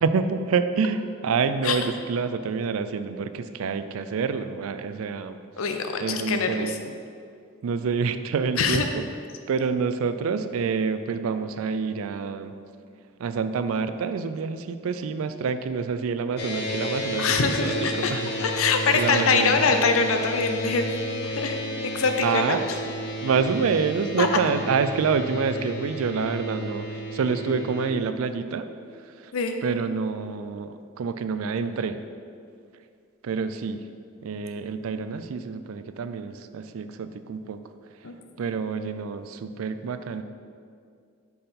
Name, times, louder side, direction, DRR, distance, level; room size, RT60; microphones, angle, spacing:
voice 1, 0.0-5.4 6.0-6.7 7.6-9.0 9.5-12.5 13.2-17.7 18.1-18.3 18.9-19.5 22.2-22.7 23.2-28.7 29.2-29.3 29.6-32.0 33.2-33.8 34.2-37.6 38.4-40.2, right 5 dB, 85° right, 11 dB, 0.4 m, -27 dB
voice 2, 5.6-6.8 8.6-8.9 17.2-18.1 18.4-20.9 21.2-21.6 21.8-22.6 24.2-24.3 29.3-29.6 38.0-38.1, left 5 dB, 85° left, 6 dB, 0.6 m, -24 dB
sound 1, 16.4-27.9, equal, 55° left, 0.9 m, -32 dB
5.7 x 4.5 x 5.1 m, 2.3 s
head